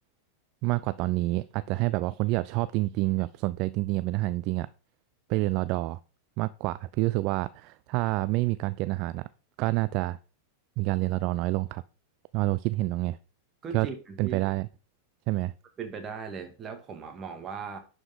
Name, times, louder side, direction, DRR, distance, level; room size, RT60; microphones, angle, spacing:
voice 1, 0.6-4.7 5.3-6.0 6.4-9.3 9.6-10.2 10.8-11.8 12.3-13.2 13.7-13.9 14.2-14.7 15.3-15.5, right 20 dB, 50° right, 0.3 m, -28 dB
voice 2, 13.6-14.5 15.8-17.8, right 6 dB, 30° right, 2.0 m, -38 dB
10.5 x 5.0 x 3.8 m
figure-of-eight pair, 95°, 0 cm